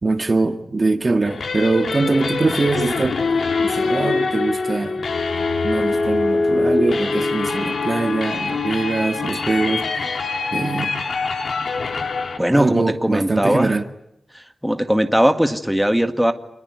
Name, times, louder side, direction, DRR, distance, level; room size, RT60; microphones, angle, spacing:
voice 1, 0.0-3.2 3.6-5.1 5.6-9.9 10.5-11.0 12.5-13.9, right 3 dB, 40° right, 1.7 m, -22 dB
sound 1, 1.2-12.4, left 3 dB, 90° left, 3.3 m, -23 dB
voice 2, 12.4-13.7 14.3-16.3, equal, 5° right, 1.8 m, -19 dB
27.0 x 21.0 x 9.5 m
wide cardioid pair, 105°, 0 cm